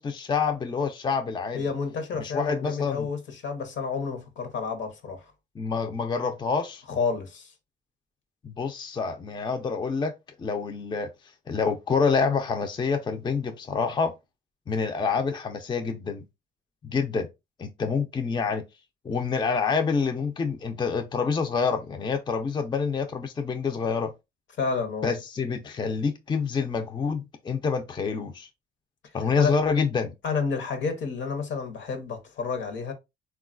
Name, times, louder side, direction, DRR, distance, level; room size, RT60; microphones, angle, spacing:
voice 1, 0.0-1.6 2.2-3.1 5.6-6.8 8.4-10.1 10.4-11.1 11.5-14.1 14.7-16.2 16.8-17.3 17.6-18.6 19.0-24.1 25.0-28.5 29.1-30.1, left 5 dB, 25° left, 0.4 m, -27 dB
voice 2, 1.5-5.3 6.9-7.5 17.1-17.2 24.6-25.1 29.0-29.6 30.2-32.9, left 5 dB, 70° left, 0.9 m, -30 dB
3.5 x 2.3 x 2.4 m
cardioid pair, 90°, 20 cm